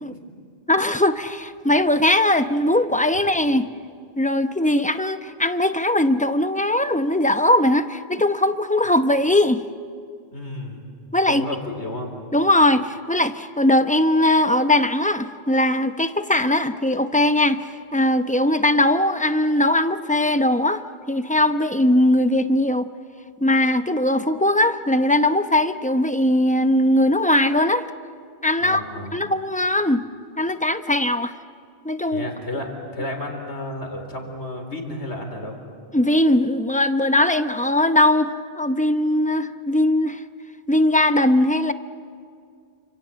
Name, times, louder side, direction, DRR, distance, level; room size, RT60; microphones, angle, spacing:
voice 1, 0.7-3.7 4.2-9.6 11.1-11.4 12.3-17.6 17.9-20.8 21.1-22.9 23.4-27.9 28.4-28.8 29.1-30.0 30.4-31.3 31.8-32.3 35.9-40.2 40.7-41.7, left 1 dB, 10° left, 9 dB, 0.7 m, -20 dB
voice 2, 10.3-10.8 11.3-12.1 28.6-29.2 32.1-35.6, left 1 dB, 90° left, 3 dB, 4.2 m, -32 dB
29.0 x 26.5 x 7.6 m, 2.2 s
omnidirectional pair, 1.1 m